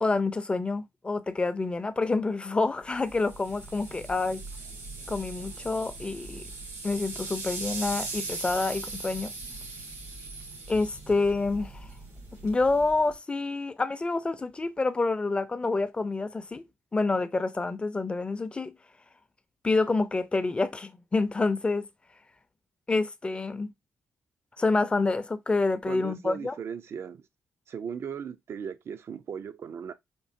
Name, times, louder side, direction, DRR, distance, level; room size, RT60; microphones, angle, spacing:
voice 1, 0.0-4.4 5.1-6.5 6.8-9.3 10.7-11.9 12.4-16.7 16.9-18.7 19.6-21.9 22.9-23.7 24.6-26.6, left 3 dB, 20° left, 0.6 m, -28 dB
sound 1, 2.9-13.2, right 3 dB, 90° right, 3.0 m, -39 dB
voice 2, 25.9-27.2 27.7-29.9, right 7 dB, 60° right, 0.6 m, -37 dB
5.3 x 2.8 x 2.6 m
cardioid pair, 105°, 5 cm